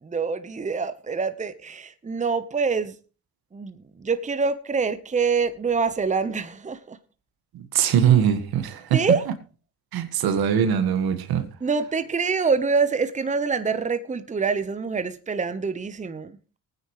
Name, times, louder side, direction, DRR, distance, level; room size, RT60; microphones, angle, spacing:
voice 1, 0.0-3.0 3.5-7.0 8.9-9.2 11.6-16.4, right 5 dB, 20° right, 1.0 m, -25 dB
voice 2, 7.5-9.1 9.9-11.5, right 9 dB, 75° right, 1.8 m, -21 dB
19.0 x 9.5 x 3.2 m
cardioid pair, 90°, 37 cm